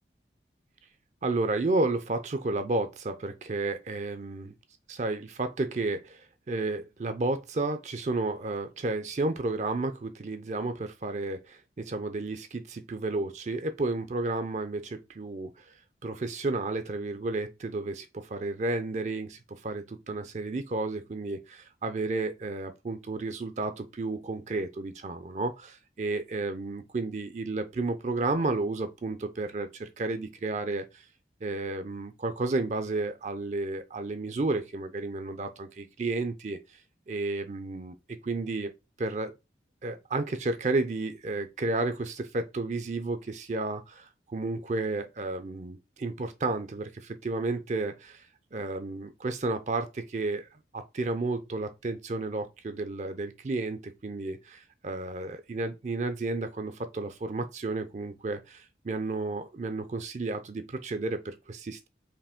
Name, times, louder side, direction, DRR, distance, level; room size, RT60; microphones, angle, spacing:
voice 1, 1.2-4.5 4.9-15.7 16.0-31.0 31.4-36.8 37.1-37.9 38.2-38.7 39.0-39.3 39.8-48.3 48.5-50.5 50.7-61.9, right 2 dB, 40° right, 0.4 m, -32 dB
4.8 x 3.0 x 3.5 m
head